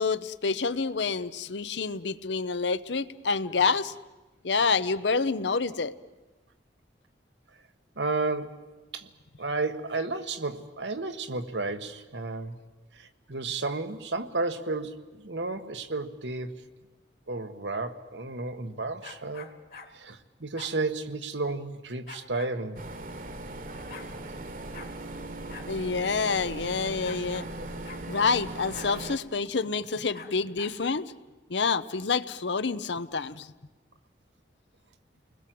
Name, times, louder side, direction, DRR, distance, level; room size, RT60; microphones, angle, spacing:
voice 1, 0.0-3.9 4.4-5.9 25.7-27.5 28.1-31.1 31.5-33.5, left 4 dB, 85° left, 14 dB, 0.8 m, -28 dB
voice 2, 8.0-9.1 9.4-12.6 12.9-16.5 17.3-19.5 19.9-22.8, right 3 dB, 90° right, 8 dB, 1.4 m, -32 dB
sound 1, 19.0-19.9 20.6-20.8 22.1-22.5 23.4-23.5 23.7-24.1 24.7-24.9 25.5-25.7 26.0-26.1 27.0-27.5 27.8-28.0 28.7-28.9 30.1-30.8, left 4 dB, 55° left, 2.0 m, -45 dB
sound 2, 22.8-29.2, right 2 dB, 50° right, 1.3 m, -39 dB
29.5 x 20.5 x 7.7 m, 1.2 s
head